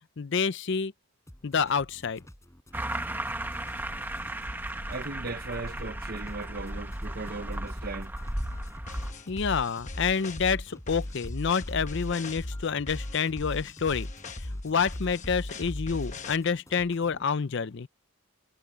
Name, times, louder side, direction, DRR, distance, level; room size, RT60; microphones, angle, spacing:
voice 1, 0.2-0.9 1.4-2.2 9.3-14.1 14.6-17.9, left 6 dB, 55° left, 0.5 m, -28 dB
sound 1, 1.3-17.3, equal, 15° left, 5.1 m, -52 dB
sound 2, 2.7-9.1, right 1 dB, 10° right, 1.1 m, -35 dB
voice 2, 4.9-8.1, right 3 dB, 40° right, 0.8 m, -37 dB
sound 3, 8.4-16.4, left 1 dB, 35° left, 1.0 m, -37 dB
head